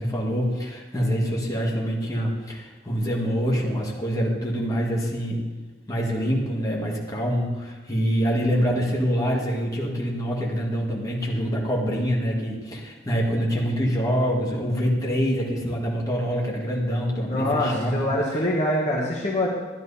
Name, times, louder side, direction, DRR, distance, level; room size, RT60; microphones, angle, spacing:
voice 1, 0.0-5.4 5.9-18.1, equal, 20° left, -3 dB, 1.6 m, -25 dB
voice 2, 17.3-19.6, left 1 dB, 40° left, -3 dB, 1.2 m, -24 dB
12.0 x 10.5 x 2.7 m, 1.3 s
head